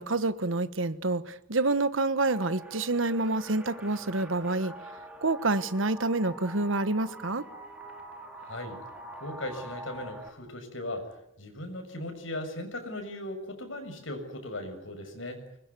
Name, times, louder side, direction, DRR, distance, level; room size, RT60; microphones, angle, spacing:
voice 1, 0.0-4.7 5.2-7.5, right 2 dB, 80° right, 1.3 m, -28 dB
sound 1, 2.2-10.3, right 1 dB, 5° right, 4.5 m, -45 dB
voice 2, 8.4-8.8 9.2-15.4, left 1 dB, 80° left, 6.8 m, -38 dB
25.0 x 22.0 x 9.7 m
head